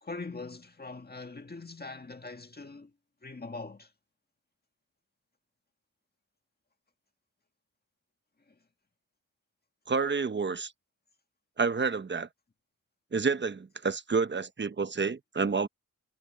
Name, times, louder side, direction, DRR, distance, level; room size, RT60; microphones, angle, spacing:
voice 1, 0.0-2.9 3.2-3.9, left 3 dB, 30° left, 1.7 m, -42 dB
voice 2, 9.9-10.7 11.6-12.3 13.1-15.7, right 4 dB, 35° right, 0.9 m, -29 dB
wide cardioid pair, 105°, 33 cm